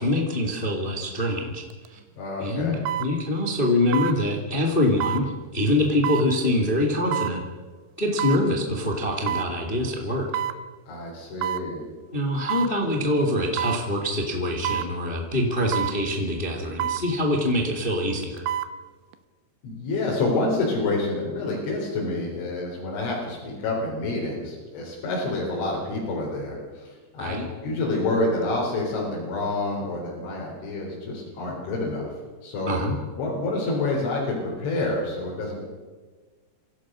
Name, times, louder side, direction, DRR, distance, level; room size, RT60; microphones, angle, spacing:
voice 1, 0.0-2.0 2.4-7.4 8.0-10.3 12.1-18.4 27.2-27.5 32.6-32.9, left 1 dB, 25° left, 2 dB, 1.1 m, -24 dB
sound 1, 1.7-1.9 2.9-3.1 3.9-4.2 5.0-5.3 6.0-6.3 7.1-7.4 8.2-8.4 9.3-9.5 10.3-10.6 11.4-11.7 12.5-12.7 13.6-13.8 14.6-14.9 15.7-16.0 16.8-17.1 18.2-18.7 19.1-19.2, right 11 dB, 80° right, 3.0 m, -27 dB
voice 2, 2.2-2.8 10.9-11.9 19.6-32.1 32.4-32.7 33.2-35.6, left 2 dB, 85° left, -5 dB, 6.4 m, -28 dB
26.5 x 16.5 x 6.3 m, 1.4 s
omnidirectional pair, 5.4 m